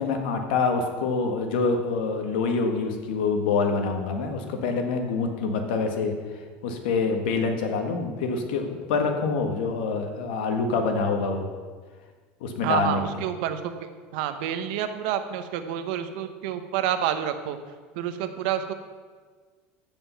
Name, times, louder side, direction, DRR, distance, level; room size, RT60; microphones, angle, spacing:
voice 1, 0.0-6.1 6.6-11.5 12.4-13.0, left 4 dB, 90° left, 4 dB, 1.6 m, -26 dB
voice 2, 12.6-13.6 14.1-17.6 18.0-18.7, right 10 dB, 75° right, 9 dB, 1.0 m, -28 dB
15.0 x 5.4 x 5.7 m, 1.5 s
supercardioid pair, 140°, 5 cm